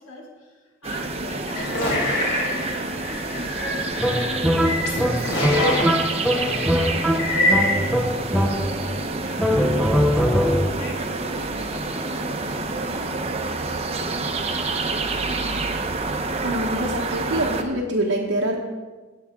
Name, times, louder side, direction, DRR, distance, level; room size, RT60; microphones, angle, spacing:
voice 1, 0.0-4.9 5.5-10.1 10.6-13.3, left 1 dB, 85° left, -3 dB, 2.9 m, -41 dB
sound 1, 0.8-17.6, right 3 dB, 30° right, 0.8 m, -28 dB
sound 2, 1.5-7.9, left 1 dB, 70° left, 3.6 m, -25 dB
sound 3, 4.0-9.0 9.4-10.9, equal, ahead, 0.6 m, -22 dB
voice 2, 16.4-18.6, right 1 dB, 80° right, -2 dB, 1.1 m, -25 dB
17.5 x 7.1 x 3.7 m, 1.3 s
head